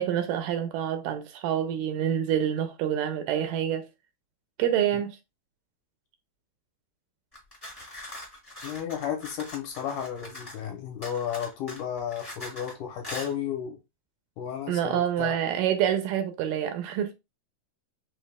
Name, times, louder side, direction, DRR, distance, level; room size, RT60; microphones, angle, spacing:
voice 1, 0.0-3.9 4.6-5.2 14.7-17.1, right 10 dB, 80° right, 2.0 m, -27 dB
sound 1, 7.3-10.7 11.0-12.7 13.0-13.3, left 1 dB, 10° left, 1.1 m, -42 dB
voice 2, 8.6-13.8 14.4-15.3, left 9 dB, 75° left, 2.4 m, -33 dB
5.6 x 2.4 x 3.4 m
omnidirectional pair, 4.0 m